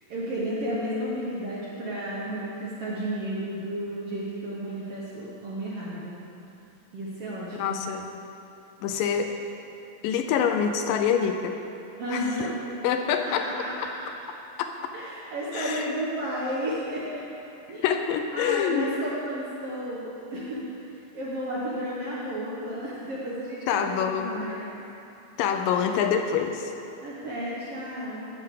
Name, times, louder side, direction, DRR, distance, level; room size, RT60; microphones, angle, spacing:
voice 1, 0.1-6.1 6.9-7.8 8.9-9.0 12.0-12.5 13.1-13.9 14.9-17.2 17.7-17.8 18.3-24.8 27.0-28.3, equal, 65° right, -7 dB, 1.5 m, -33 dB
voice 2, 7.6-8.1 8.8-9.4 10.0-11.6 12.1-12.5 12.8-13.5 14.6-14.7 15.5-15.9 17.8-18.9 23.7-24.5 25.4-26.7, left 7 dB, 80° left, 6 dB, 2.1 m, -26 dB
13.0 x 8.1 x 3.7 m, 2.9 s
omnidirectional pair, 4.1 m